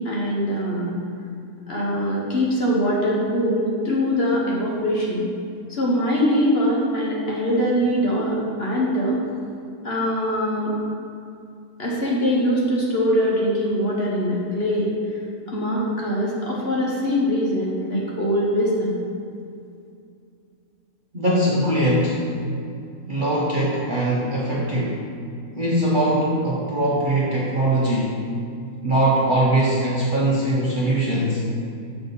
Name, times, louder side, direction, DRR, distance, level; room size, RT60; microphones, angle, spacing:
voice 1, 0.0-1.0 1.7-5.3 5.7-9.2 9.8-10.7 11.8-14.9 15.5-19.0, equal, 45° left, -4 dB, 1.2 m, -22 dB
voice 2, 21.1-22.2 23.1-25.0 25.5-28.2 28.8-31.5, right 1 dB, 40° right, -5 dB, 0.8 m, -21 dB
7.0 x 5.0 x 4.0 m, 2.5 s
omnidirectional pair, 1.6 m